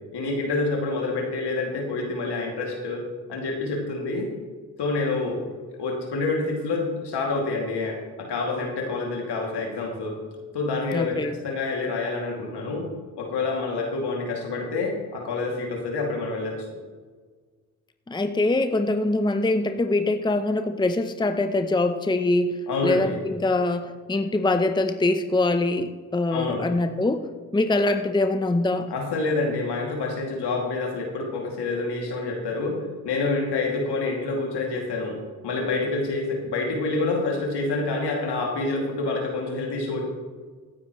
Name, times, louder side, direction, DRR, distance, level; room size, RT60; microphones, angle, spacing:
voice 1, 0.1-3.0 3.3-4.3 4.8-5.4 5.8-10.2 10.5-11.2 11.4-12.8 13.2-16.6 22.7-23.2 26.3-26.6 28.9-32.8 33.0-35.2 35.4-40.0, left 3 dB, 65° left, 0 dB, 2.7 m, -27 dB
voice 2, 10.9-11.4 18.1-22.6 22.8-27.2 27.5-28.9, left 2 dB, 10° left, 8 dB, 0.8 m, -23 dB
16.0 x 9.7 x 3.2 m, 1.5 s
hypercardioid pair, 45°, 43 cm